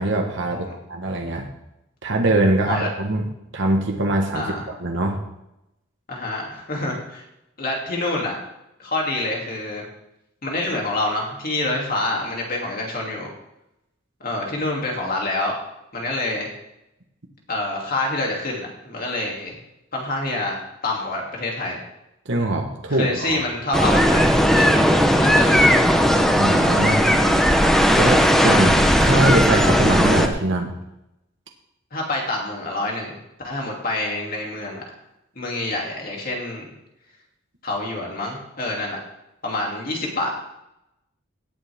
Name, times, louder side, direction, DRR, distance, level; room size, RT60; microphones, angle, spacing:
voice 1, 0.0-1.5 2.0-3.3 3.5-4.5 4.8-5.2 22.2-23.4 26.4-27.0 28.0-30.7, right 1 dB, 60° right, 2 dB, 1.4 m, -22 dB
voice 2, 4.3-4.6 6.1-7.2 7.6-8.4 8.8-9.8 10.4-13.3 14.2-15.6 15.9-16.5 17.5-19.6 19.9-21.8 22.9-25.8 31.9-33.2 33.4-34.8 35.4-36.7 37.6-39.0 39.4-40.3, left 2 dB, 45° left, -1 dB, 2.9 m, -27 dB
sound 1, 23.7-30.3, equal, ahead, 0.8 m, -17 dB
17.5 x 8.5 x 3.6 m, 0.87 s
head